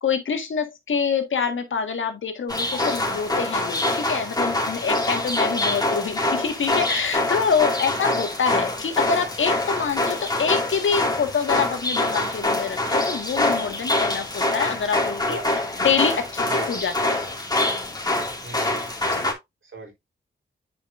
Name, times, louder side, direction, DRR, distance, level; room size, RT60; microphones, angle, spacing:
voice 1, 0.0-15.4 15.8-17.4 19.1-19.3, left 6 dB, 70° left, 1.7 m, -26 dB
sound 1, 2.5-19.3, left 2 dB, 20° left, 2.4 m, -25 dB
voice 2, 15.2-15.5 16.5-16.8 18.4-19.2 19.6-19.9, right 3 dB, 70° right, 3.8 m, -39 dB
8.7 x 5.0 x 2.6 m
cardioid pair, 55°, 21 cm